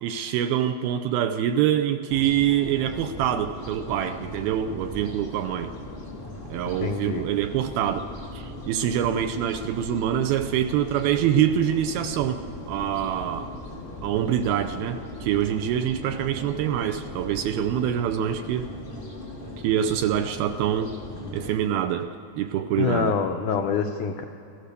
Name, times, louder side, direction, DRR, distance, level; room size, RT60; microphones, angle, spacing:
voice 1, 0.0-5.7 6.5-8.0 8.3-12.4 12.7-13.5 14.0-18.7 19.6-20.9 21.3-23.2, right 10 dB, 80° right, 8 dB, 2.3 m, -25 dB
sound 1, 2.1-21.6, left 1 dB, 15° left, 2.4 m, -39 dB
voice 2, 6.8-7.2 22.8-24.2, left 6 dB, 85° left, 4 dB, 1.8 m, -25 dB
29.0 x 14.5 x 6.8 m, 2.8 s
omnidirectional pair, 4.8 m